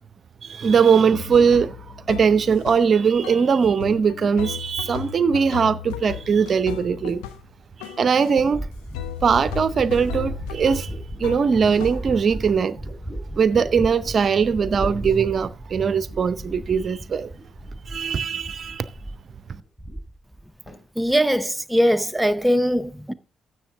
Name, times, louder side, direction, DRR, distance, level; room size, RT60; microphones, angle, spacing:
voice 1, 0.4-7.2 7.8-8.7 9.2-10.9 11.2-12.8 13.4-17.3 17.9-18.8 19.5-19.6, right 6 dB, 45° right, 0.6 m, -20 dB
sound 1, 1.1-3.0 3.2-7.5 7.8-8.5 8.9-12.1, left 11 dB, 70° left, 0.7 m, -36 dB
sound 2, 7.7-7.8 8.4-18.1 18.4-19.3 19.6-20.4 20.7-21.2, right 1 dB, 10° left, 2.9 m, -35 dB
voice 2, 21.0-23.1, equal, 5° right, 0.7 m, -21 dB
13.0 x 7.8 x 3.6 m
figure-of-eight pair, 40°, 0 cm